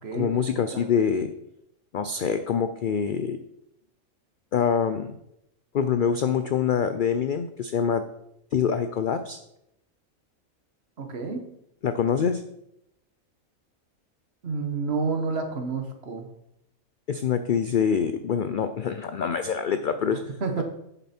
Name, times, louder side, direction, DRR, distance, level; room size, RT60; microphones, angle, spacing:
voice 1, 0.1-1.3 1.9-3.4 4.5-5.2 5.7-8.0 8.5-9.4 11.8-12.4 17.1-20.2, left 7 dB, 70° left, 10 dB, 0.4 m, -25 dB
voice 2, 11.0-11.4 14.4-16.3 20.1-20.6, right 4 dB, 50° right, 5 dB, 1.3 m, -29 dB
8.2 x 6.9 x 4.3 m, 0.80 s
omnidirectional pair, 1.4 m